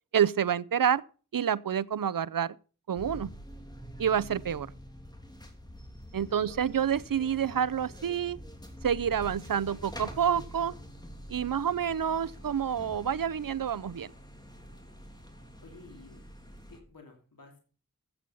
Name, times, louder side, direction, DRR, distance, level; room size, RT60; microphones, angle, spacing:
voice 1, 0.1-1.0 1.3-2.5 2.9-3.3 4.0-4.7 6.1-8.4 8.8-10.7 11.3-14.1, right 8 dB, 80° right, 0.6 m, -28 dB
sound 1, 3.0-16.8, equal, 10° left, 3.1 m, -46 dB
voice 2, 15.6-16.2 16.7-17.6, left 3 dB, 90° left, 2.9 m, -53 dB
14.0 x 8.5 x 5.5 m
wide cardioid pair, 45°, 33 cm